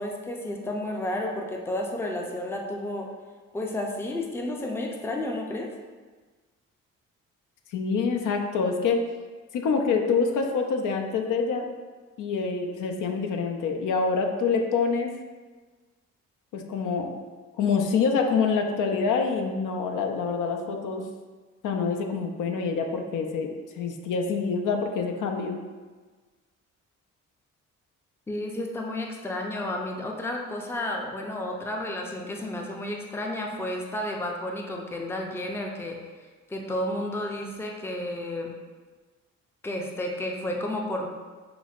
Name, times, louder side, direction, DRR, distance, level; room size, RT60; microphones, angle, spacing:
voice 1, 0.0-3.1 3.5-5.7 28.3-36.0 36.5-38.5 39.6-41.1, left 1 dB, 10° left, 1 dB, 0.4 m, -31 dB
voice 2, 7.7-9.0 9.5-11.7 12.2-15.1 16.5-17.1 17.6-21.0 21.6-23.5 23.8-25.6, left 5 dB, 70° left, 3 dB, 0.5 m, -26 dB
5.8 x 2.0 x 2.4 m, 1.4 s
cardioid pair, 70°, 32 cm